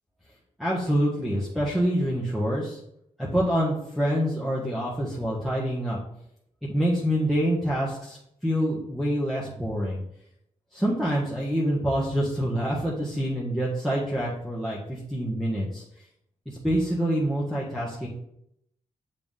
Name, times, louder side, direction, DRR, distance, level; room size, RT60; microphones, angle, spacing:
voice 1, 0.6-2.8 3.2-6.0 6.6-8.2 8.4-10.0 10.7-15.8 16.4-18.1, equal, ahead, -7 dB, 1.5 m, -26 dB
7.1 x 3.8 x 3.7 m, 0.74 s
cardioid pair, 60°, 14 cm